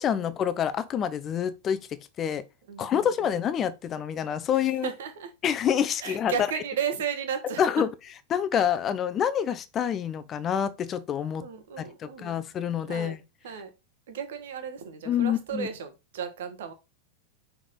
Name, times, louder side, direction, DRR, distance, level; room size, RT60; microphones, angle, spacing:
voice 1, 0.0-2.4 2.8-4.9 5.4-6.3 7.6-7.9 8.3-11.4 11.8-13.2 15.1-15.7, left 8 dB, 30° left, 0.7 m, -27 dB
voice 2, 2.7-3.3 4.5-5.3 6.0-7.8 8.5-8.6 11.4-12.3 12.6-13.1 13.4-13.7 14.1-16.7, right 7 dB, 60° right, 1.3 m, -34 dB
6.0 x 4.6 x 4.0 m
figure-of-eight pair, 90°, 0 cm